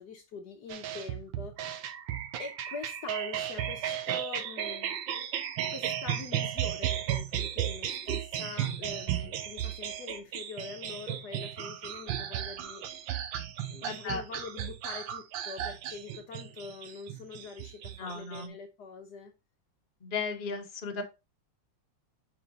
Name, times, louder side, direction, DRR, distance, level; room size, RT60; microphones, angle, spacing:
voice 1, 0.0-2.0 2.4-5.0 5.7-12.8 13.7-19.3, left 5 dB, 65° left, 1.3 m, -44 dB
sound 1, 0.7-18.5, right 10 dB, 80° right, 1.5 m, -35 dB
voice 2, 13.8-14.2 18.0-18.5 20.0-21.0, left 4 dB, 30° left, 1.2 m, -35 dB
5.6 x 4.8 x 3.9 m
omnidirectional pair, 2.1 m